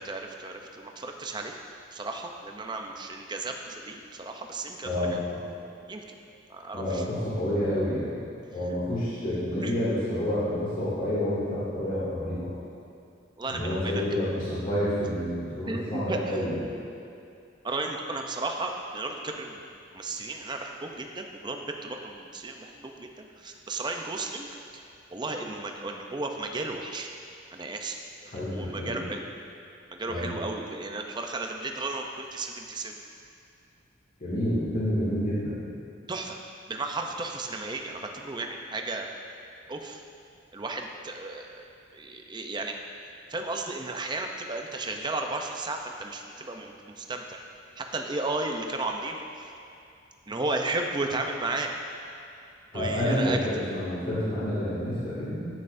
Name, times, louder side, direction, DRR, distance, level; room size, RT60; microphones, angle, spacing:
voice 1, 0.0-1.5 1.9-5.2 5.9-6.2 6.5-7.1 9.6-9.7 13.4-14.0 15.7-16.4 17.6-19.7 19.9-24.5 24.7-24.8 25.1-27.1 27.5-29.2 29.9-33.0 36.1-36.4 36.7-39.1 39.7-40.0 40.5-41.6 41.9-42.7 43.3-47.4 47.8-49.5 50.3-51.7 52.7-53.4, right 2 dB, 25° right, 3 dB, 0.6 m, -34 dB
voice 2, 4.8-5.4 6.7-8.2 8.5-12.5 13.5-16.6 28.3-29.0 30.1-30.3 34.2-35.6 52.7-55.5, left 1 dB, 45° left, -10 dB, 2.3 m, -29 dB
12.0 x 8.9 x 2.6 m, 2.5 s
head